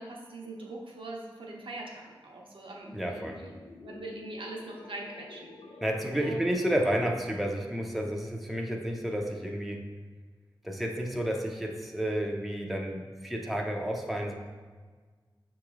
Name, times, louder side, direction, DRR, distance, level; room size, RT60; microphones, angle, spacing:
voice 1, 0.0-5.5 6.2-6.6, right 2 dB, 80° right, -2 dB, 0.7 m, -42 dB
sound 1, 2.8-7.1, left 4 dB, 85° left, 0.4 m, -49 dB
voice 2, 2.9-3.4 5.8-9.9 10.6-14.3, equal, ahead, 1 dB, 0.5 m, -31 dB
6.1 x 3.0 x 2.4 m, 1.5 s
wide cardioid pair, 60°, 9 cm